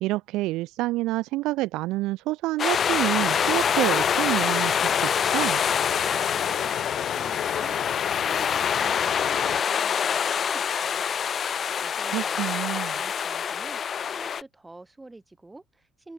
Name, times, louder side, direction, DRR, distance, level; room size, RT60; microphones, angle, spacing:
voice 1, 0.0-5.6 12.1-13.0, right 19 dB, 70° right, 0.5 m, -28 dB
sound 1, 2.6-14.4, left 7 dB, 35° left, 0.9 m, -26 dB
sound 2, 2.7-9.6, left 13 dB, 55° left, 0.4 m, -33 dB
voice 2, 6.1-11.2 11.8-13.8 14.1-16.1, right 2 dB, 10° right, 2.9 m, -47 dB
cardioid pair, 115°, 0 cm